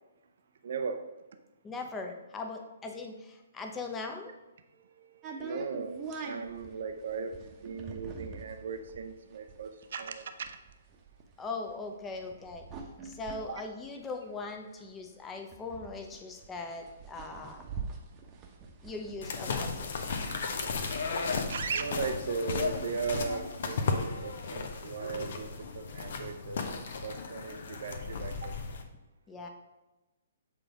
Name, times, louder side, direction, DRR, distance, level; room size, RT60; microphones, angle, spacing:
voice 1, 0.6-1.0 5.0-10.6 13.5-13.6 21.5-25.5 25.7-26.6 27.0-28.5, right 5 dB, 55° right, 8 dB, 0.6 m, -37 dB
voice 2, 1.6-4.3 11.4-12.7 13.0-17.6 18.8-19.9 29.3-29.5, left 3 dB, 15° left, 3 dB, 0.9 m, -40 dB
sound 1, 5.2-14.7 15.1-15.2 15.3-19.3, right 4 dB, 25° right, 1.0 m, -44 dB
sound 2, 19.2-28.8, left 4 dB, 55° left, 0.8 m, -35 dB
7.5 x 3.9 x 5.1 m, 1.1 s
figure-of-eight pair, 125°, 0 cm